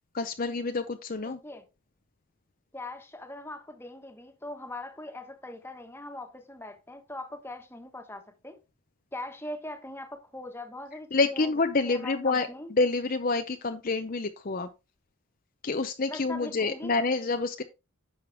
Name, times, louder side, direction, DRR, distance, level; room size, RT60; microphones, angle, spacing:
voice 1, 0.1-1.4 11.1-14.7 15.6-17.6, left 3 dB, 40° left, 0.6 m, -28 dB
voice 2, 1.2-1.6 2.7-8.6 9.1-12.7 16.1-16.9, left 2 dB, 10° left, 1.4 m, -41 dB
9.9 x 6.5 x 3.5 m
head